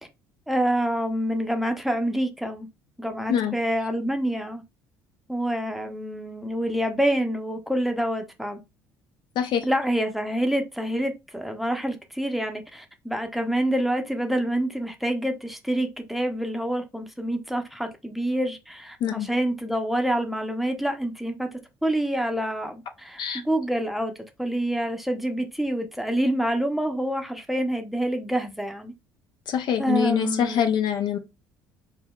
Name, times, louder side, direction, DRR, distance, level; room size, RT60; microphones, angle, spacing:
voice 1, 0.5-2.7 3.0-4.6 5.3-8.6 9.6-21.5 21.8-28.9 29.8-30.7, right 1 dB, ahead, 0.7 m, -27 dB
voice 2, 9.4-9.7 19.0-19.3 23.2-23.4 29.5-31.2, left 8 dB, 55° left, 0.5 m, -24 dB
5.3 x 2.2 x 2.3 m
hypercardioid pair, 65°, 9 cm